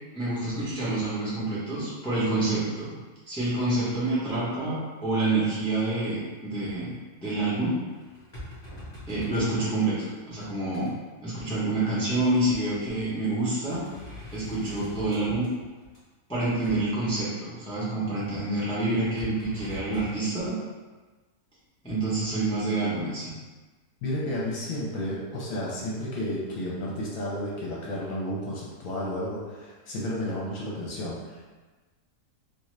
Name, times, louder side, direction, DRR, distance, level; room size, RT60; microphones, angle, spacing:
voice 1, 0.1-2.9 3.3-6.9 7.2-7.8 9.1-10.9 11.2-13.8 14.3-15.4 16.3-20.6 21.8-23.3, right 2 dB, 5° left, -9 dB, 0.4 m, -27 dB
sound 1, 7.4-9.6 10.1-10.9 12.4-12.5 13.0-13.2 13.5-16.0 16.6-16.8 18.9-20.1, left 1 dB, 35° left, 0.8 m, -43 dB
voice 2, 24.0-31.5, left 1 dB, 65° left, -5 dB, 1.0 m, -32 dB
2.6 x 2.4 x 3.1 m, 1.3 s
omnidirectional pair, 1.6 m